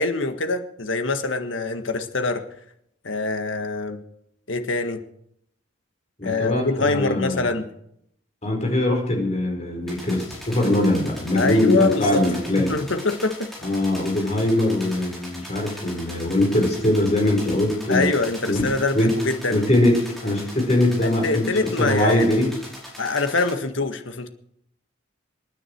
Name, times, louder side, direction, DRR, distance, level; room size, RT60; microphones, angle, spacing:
voice 1, 0.0-2.4 3.0-4.0 4.5-5.0 6.2-7.7 11.3-12.2 12.6-13.5 17.9-19.7 21.0-22.3 23.0-24.3, left 3 dB, 75° left, 7 dB, 1.7 m, -24 dB
voice 2, 6.2-7.5 8.4-12.8 13.6-18.1 18.5-19.1 19.5-22.5, left 1 dB, 35° left, 2 dB, 4.7 m, -22 dB
sound 1, 9.9-23.5, left 1 dB, ahead, 5.4 m, -40 dB
26.5 x 10.0 x 4.7 m, 0.73 s
head